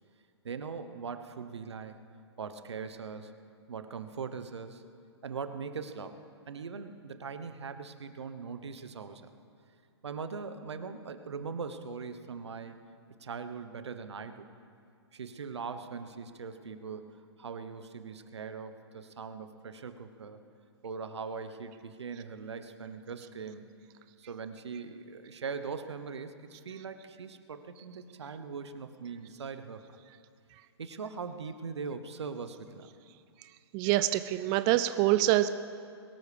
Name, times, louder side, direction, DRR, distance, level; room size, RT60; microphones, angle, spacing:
voice 1, 0.4-2.0 2.4-3.3 3.7-4.8 5.2-6.2 6.5-9.3 10.0-12.8 13.2-14.5 15.1-20.4 20.8-23.8 24.2-30.0 30.8-32.9, right 5 dB, 75° right, 9 dB, 1.0 m, -41 dB
voice 2, 33.7-35.5, right 14 dB, 25° right, 11 dB, 0.4 m, -25 dB
22.0 x 13.0 x 3.4 m, 2.3 s
hypercardioid pair, 120°, 14 cm